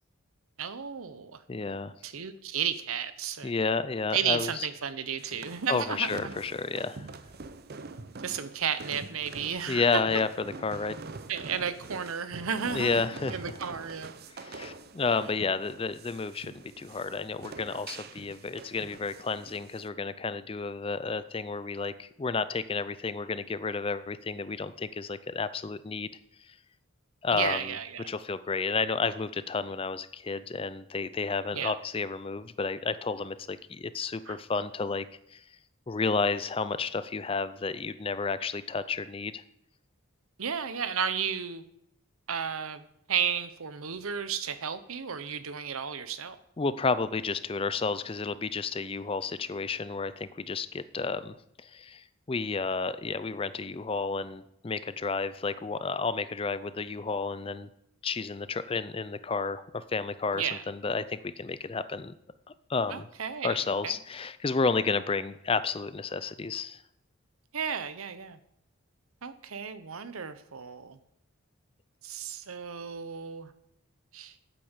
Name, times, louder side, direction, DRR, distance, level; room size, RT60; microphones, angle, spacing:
voice 1, 0.6-1.4 2.0-3.5 4.1-6.3 8.2-9.9 11.3-14.1 15.2-15.3 27.3-28.1 31.5-31.7 34.3-34.4 40.4-41.6 42.3-46.4 60.3-60.6 62.9-64.0 67.5-68.4 69.2-71.0 72.0-73.5 74.1-74.3, right 7 dB, 75° right, 12 dB, 0.8 m, -33 dB
voice 2, 1.5-1.9 3.4-4.7 5.7-7.1 9.7-11.0 12.7-13.4 14.4-26.1 27.2-27.6 28.1-35.1 35.3-35.4 35.9-39.4 46.6-51.4 51.6-57.7 58.0-62.1 62.7-63.1 63.4-66.8, left 4 dB, 25° left, 14 dB, 0.4 m, -31 dB
sound 1, 5.2-19.9, right 3 dB, 45° right, 0.6 m, -45 dB
8.8 x 8.5 x 7.2 m, 0.79 s
head